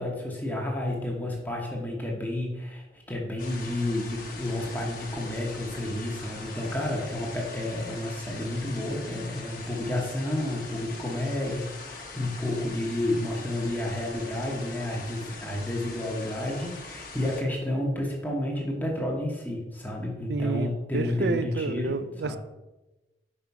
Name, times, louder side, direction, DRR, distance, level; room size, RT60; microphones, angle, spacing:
voice 1, 0.0-22.4, left 1 dB, 10° left, -2 dB, 1.0 m, -31 dB
sound 1, 3.4-17.4, left 3 dB, 55° left, 1.1 m, -42 dB
voice 2, 20.3-22.4, right 4 dB, 65° right, 13 dB, 0.4 m, -30 dB
5.5 x 4.8 x 4.7 m, 1.1 s
head